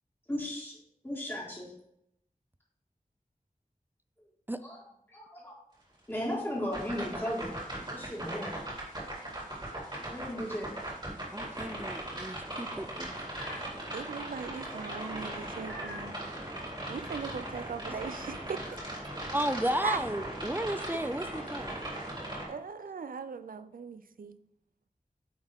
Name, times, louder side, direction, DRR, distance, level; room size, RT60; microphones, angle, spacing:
voice 1, 0.3-0.8 1.0-1.7 4.6-4.8 5.1-5.5 6.1-7.5 7.9-8.5 10.1-10.7 13.3-13.6 14.7-15.3 15.7-16.2, equal, 15° left, -8 dB, 1.9 m, -36 dB
sound 1, 6.7-22.5, right 1 dB, 30° right, 2.7 m, -39 dB
voice 2, 11.3-13.2 17.9-18.0 19.3-21.8, right 1 dB, 15° right, 11 dB, 0.4 m, -34 dB
voice 3, 13.9-16.2 16.9-18.6 19.8-20.0 20.9-21.0 22.3-24.4, right 5 dB, 75° right, 12 dB, 0.4 m, -39 dB
9.4 x 3.6 x 3.5 m, 0.75 s
wide cardioid pair, 65°, 15 cm